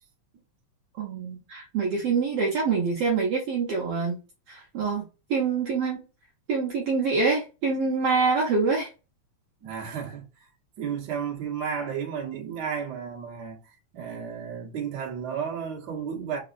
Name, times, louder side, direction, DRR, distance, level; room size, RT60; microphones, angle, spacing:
voice 1, 1.0-4.2 4.5-5.0 5.3-6.0 6.5-8.9, right 4 dB, 70° right, 1.6 m, -25 dB
voice 2, 9.6-10.5 10.8-16.4, right 7 dB, 50° right, 1.4 m, -33 dB
4.0 x 3.9 x 2.5 m
omnidirectional pair, 3.3 m